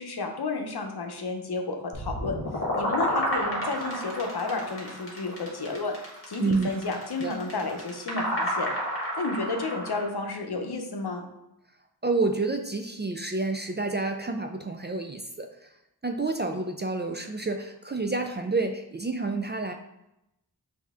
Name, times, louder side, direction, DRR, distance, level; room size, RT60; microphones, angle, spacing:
voice 1, 0.0-2.4 2.7-6.0 6.3-8.7 9.2-11.2, left 3 dB, 65° left, 4 dB, 0.8 m, -31 dB
sound 1, 1.9-10.1, equal, 30° left, 1.5 m, -31 dB
voice 2, 12.0-15.7 16.0-19.7, right 3 dB, 25° right, 4 dB, 0.4 m, -29 dB
5.3 x 2.8 x 3.5 m, 0.86 s
wide cardioid pair, 70°, 42 cm